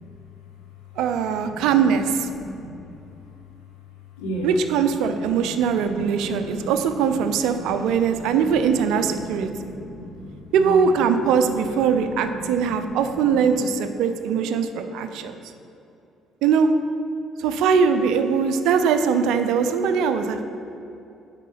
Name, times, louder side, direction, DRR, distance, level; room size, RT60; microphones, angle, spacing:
voice 1, 1.0-2.3 4.4-9.7 10.5-15.4 16.4-16.7 17.4-20.4, right 6 dB, 65° right, 8 dB, 0.4 m, -21 dB
voice 2, 2.3-2.8 4.2-4.5 5.3-6.7 7.2-8.4 9.1-10.3 10.5-10.8 11.4-11.5 12.0-12.1 12.4-12.9 13.2-13.3, right 1 dB, 70° left, -3 dB, 1.5 m, -36 dB
8.2 x 3.7 x 5.7 m, 2.8 s
figure-of-eight pair, 50°, 0 cm